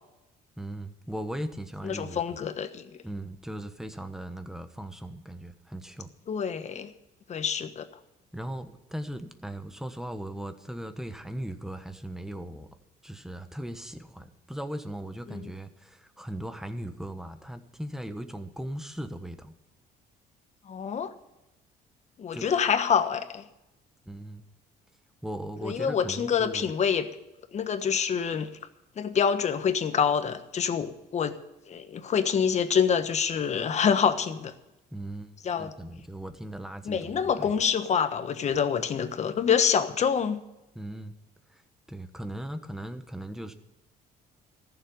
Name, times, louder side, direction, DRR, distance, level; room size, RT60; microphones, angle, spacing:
voice 1, 0.6-2.4 3.0-6.1 8.3-12.7 13.0-19.5 22.3-22.5 24.1-24.4 25.2-26.7 34.9-37.5 40.7-41.1 41.5-41.6 41.9-43.5, right 1 dB, 5° right, 9 dB, 1.2 m, -38 dB
voice 2, 1.8-2.8 6.3-6.9 7.3-7.8 15.3-15.5 20.7-21.1 22.2-23.5 25.6-27.1 27.5-28.5 29.0-31.3 31.7-34.5 35.4-35.7 36.8-40.4, left 7 dB, 40° left, 9 dB, 1.2 m, -26 dB
14.5 x 7.2 x 9.6 m, 0.92 s
cardioid pair, 110°, 17 cm